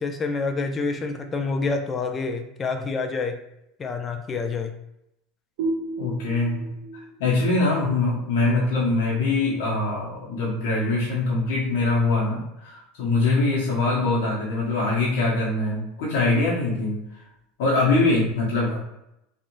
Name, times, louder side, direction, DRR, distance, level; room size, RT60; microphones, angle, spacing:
voice 1, 0.0-3.4 3.8-4.7, left 4 dB, 30° left, 6 dB, 0.4 m, -27 dB
sound 1, 5.6-9.0, right 2 dB, 70° right, 0.7 m, -34 dB
voice 2, 6.0-6.7 7.2-17.0 17.6-18.8, left 3 dB, 75° left, -6 dB, 0.9 m, -23 dB
2.9 x 2.4 x 2.6 m, 0.83 s
hypercardioid pair, 95°, 0 cm